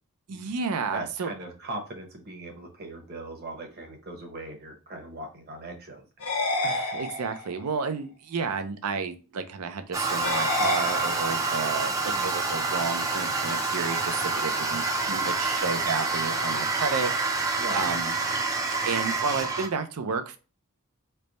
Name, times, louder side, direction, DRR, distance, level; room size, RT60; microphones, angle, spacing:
voice 1, 0.3-1.3 6.6-18.1 18.8-20.4, right 5 dB, 85° right, 8 dB, 0.5 m, -31 dB
voice 2, 0.9-6.3 12.1-12.4 17.6-17.9, right 2 dB, 45° right, 2 dB, 0.9 m, -39 dB
sound 1, 6.2-7.6 10.2-11.6, left 2 dB, 90° left, 0.7 m, -29 dB
Toilet flush, 9.9-19.7, right 3 dB, 15° right, 0.3 m, -27 dB
3.3 x 2.1 x 3.9 m, 0.33 s
head